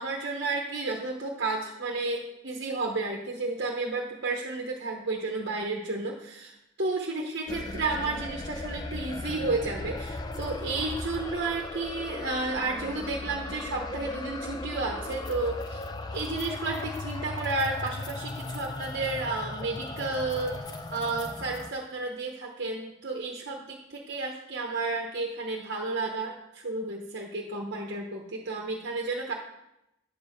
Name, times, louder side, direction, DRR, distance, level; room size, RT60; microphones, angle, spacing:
voice 1, 0.0-29.3, right 3 dB, 55° right, 0 dB, 0.9 m, -32 dB
sound 1, 7.5-21.7, left 2 dB, 20° left, 0.4 m, -37 dB
9.6 x 4.6 x 6.5 m, 0.88 s
head